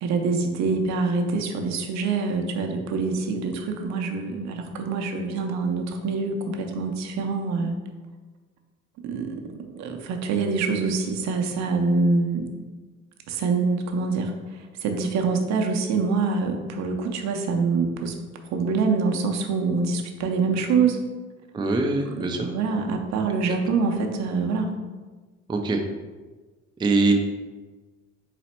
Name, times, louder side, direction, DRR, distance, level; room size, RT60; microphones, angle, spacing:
voice 1, 0.0-7.7 9.0-12.5 13.3-18.1 18.4-21.0 21.9-24.7, right 4 dB, 65° right, 4 dB, 0.6 m, -25 dB
voice 2, 21.5-22.5 25.5-25.8 26.8-27.2, right 3 dB, 15° right, 3 dB, 0.4 m, -22 dB
4.1 x 2.1 x 4.3 m, 1.3 s
supercardioid pair, 80°, 30 cm